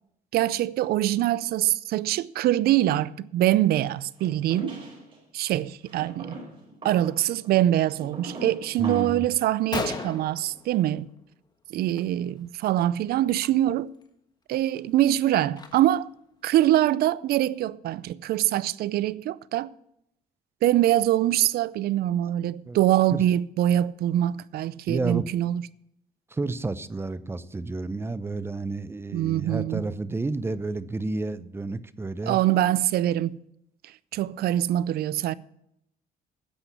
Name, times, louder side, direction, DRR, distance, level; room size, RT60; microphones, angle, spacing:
voice 1, 0.3-4.8 5.3-6.4 6.8-11.1 11.7-13.9 14.5-16.1 16.4-19.7 20.6-25.6 29.1-29.9 32.3-33.4 34.1-35.3, right 13 dB, 65° right, 0.5 m, -24 dB
sound 1, 4.2-5.2 5.8-9.3, right 1 dB, 30° right, 5.3 m, -41 dB
voice 2, 8.8-9.3 22.7-22.8 23.1-23.2 24.9-25.3 26.3-32.4, right 3 dB, 15° right, 0.6 m, -30 dB
Gunshot gunfire, 9.4-9.5 9.7-11.3 11.7-12.0 12.3-12.5 13.3-13.5 14.0-14.1 14.5-16.1, left 3 dB, 25° left, 1.4 m, -36 dB
10.0 x 7.8 x 8.2 m
cardioid pair, 110°, 17 cm